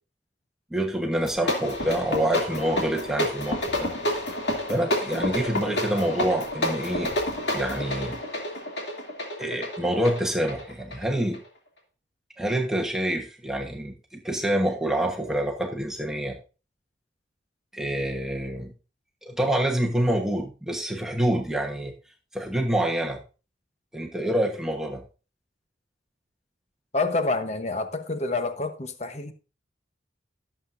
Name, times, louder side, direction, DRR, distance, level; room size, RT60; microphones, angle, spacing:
voice 1, 0.7-3.9 4.7-7.1 7.5-8.2 9.4-11.4 12.4-16.4 17.7-18.7 19.2-21.9 22.3-23.2 23.9-25.0, right 1 dB, 5° right, 1.2 m, -27 dB
sound 1, 1.1-11.5, left 1 dB, 60° left, 2.7 m, -29 dB
voice 2, 26.9-29.3, left 3 dB, 35° left, 1.0 m, -27 dB
17.5 x 7.6 x 2.6 m
head